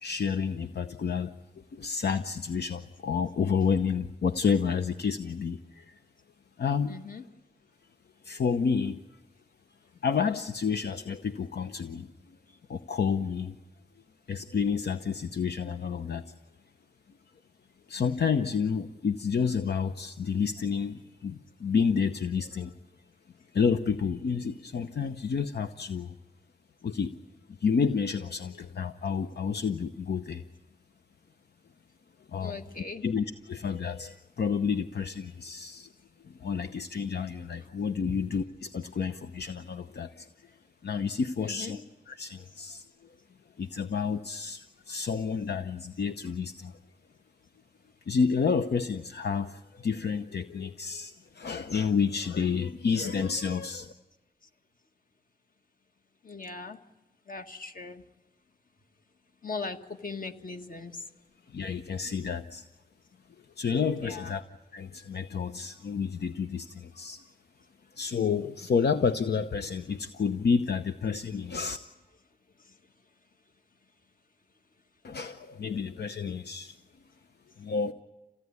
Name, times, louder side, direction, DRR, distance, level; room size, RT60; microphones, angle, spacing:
voice 1, 0.0-1.3 1.8-5.9 6.6-7.0 8.2-9.0 10.0-12.1 12.7-13.6 14.3-16.2 17.9-22.7 23.5-26.1 26.8-27.1 27.6-30.4 32.3-35.9 36.4-40.3 40.8-41.8 42.1-42.8 43.6-46.7 48.1-53.9 61.5-62.6 63.6-64.4 64.7-67.2 68.0-71.8 75.0-76.7 77.6-77.9, left 6 dB, 70° left, 8 dB, 0.8 m, -30 dB
voice 2, 6.9-7.2 32.4-33.1 38.1-38.2 41.4-41.8 56.2-56.8 57.3-58.0 59.4-61.0 64.0-64.3, left 4 dB, 55° left, 5 dB, 1.9 m, -39 dB
28.0 x 16.5 x 9.6 m, 1.2 s
wide cardioid pair, 75°, 17 cm